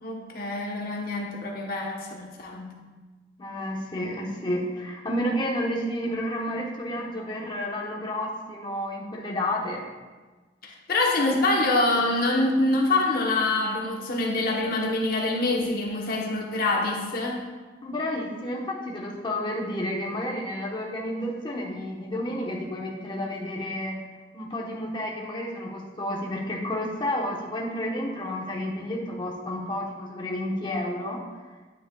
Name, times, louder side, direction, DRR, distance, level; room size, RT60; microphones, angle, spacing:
voice 1, 0.0-2.8 10.6-17.5, left 2 dB, 55° left, 0 dB, 1.0 m, -25 dB
voice 2, 3.4-9.8 17.8-24.0 24.3-31.3, left 1 dB, 25° left, -3 dB, 1.1 m, -31 dB
9.5 x 9.2 x 2.3 m, 1.3 s
head